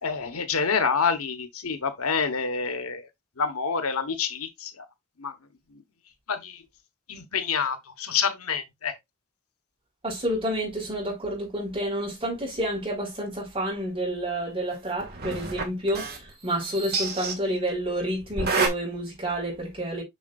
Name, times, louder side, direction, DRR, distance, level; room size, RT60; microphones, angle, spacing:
voice 1, 0.0-3.1 3.4-4.8 5.2-5.3 6.3-6.6 7.1-9.0, left 5 dB, 85° left, 1.3 m, -27 dB
voice 2, 10.0-20.0, right 1 dB, 25° right, 5.0 m, -29 dB
sound 1, 15.0-16.3 16.6-17.3 18.2-18.7, right 4 dB, 45° right, 2.0 m, -28 dB
7.0 x 6.4 x 2.5 m
head